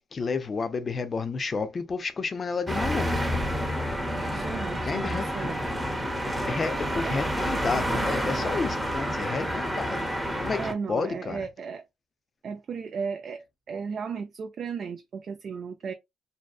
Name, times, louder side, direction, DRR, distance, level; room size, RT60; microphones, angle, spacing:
voice 1, 0.1-3.2 4.9-5.5 6.5-10.1 10.4-11.4, left 4 dB, 40° left, 0.5 m, -31 dB
sound 1, 2.7-10.7, equal, 5° right, 0.7 m, -29 dB
voice 2, 4.3-5.7 7.0-7.2 10.6-11.8 12.4-15.9, right 6 dB, 55° right, 0.3 m, -35 dB
2.6 x 2.2 x 2.3 m
cardioid pair, 90°, 0 cm